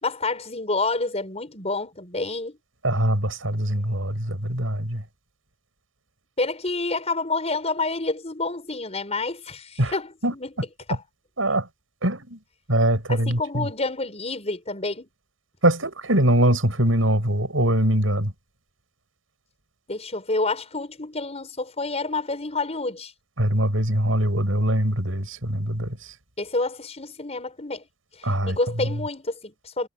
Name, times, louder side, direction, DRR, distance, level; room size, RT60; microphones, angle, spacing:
voice 1, 0.0-2.6 6.4-10.5 10.9-11.0 13.1-15.1 19.9-23.1 26.4-27.9 28.1-29.9, left 3 dB, 35° left, 5.6 m, -28 dB
voice 2, 2.8-5.0 9.8-9.9 10.2-10.3 11.4-11.7 12.0-12.4 12.7-13.7 15.6-18.3 23.4-26.1 28.2-28.6, right 1 dB, 85° right, 7.5 m, -22 dB
head